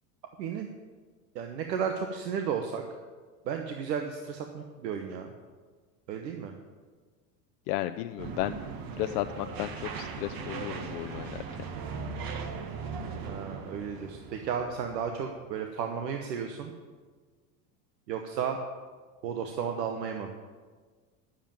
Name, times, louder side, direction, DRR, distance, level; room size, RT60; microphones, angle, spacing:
voice 1, 1.3-2.8 3.5-5.3 6.1-6.5 13.2-16.7 18.1-18.6 19.2-20.3, right 7 dB, 90° right, 4 dB, 1.1 m, -33 dB
voice 2, 7.7-8.5 9.0-11.4, left 15 dB, 70° left, 9 dB, 0.6 m, -33 dB
sound 1, 8.2-15.3, right 5 dB, 45° right, 1.5 m, -39 dB
10.0 x 7.3 x 8.7 m, 1.5 s
hypercardioid pair, 100°, 48 cm